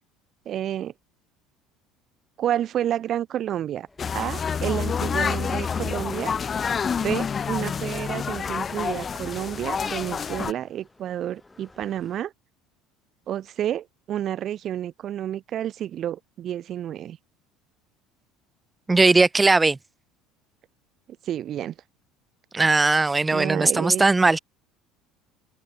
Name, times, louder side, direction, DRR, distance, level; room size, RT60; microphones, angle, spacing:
voice 1, 0.4-0.9 2.4-3.9 4.1-6.4 7.0-12.3 13.3-17.2 21.2-21.7 23.3-24.0, right 11 dB, 45° right, 1.4 m, -30 dB
sound 1, 3.9-12.2, left 2 dB, 15° left, 6.5 m, -51 dB
sound 2, 4.0-10.5, left 6 dB, 35° left, 0.8 m, -28 dB
voice 2, 18.9-19.8 22.5-24.4, right 3 dB, 15° right, 0.6 m, -19 dB
open air
hypercardioid pair, 65°, 0 cm